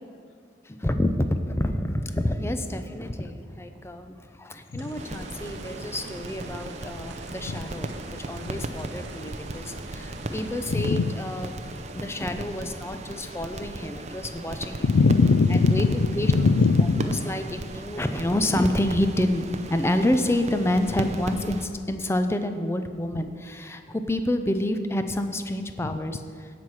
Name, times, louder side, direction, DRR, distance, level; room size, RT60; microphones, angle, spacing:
voice 1, 0.7-11.5 11.9-14.9 15.5-16.3 17.3-26.5, left 1 dB, 15° left, 8 dB, 0.5 m, -28 dB
sound 1, 4.8-15.7 18.0-18.1, right 2 dB, 65° right, 0.9 m, -44 dB
sound 2, 4.9-21.7, right 2 dB, 35° right, 0.6 m, -37 dB
voice 2, 10.7-11.1 14.8-17.2, left 4 dB, 80° left, 14 dB, 0.4 m, -20 dB
17.0 x 6.0 x 4.8 m, 2.3 s
head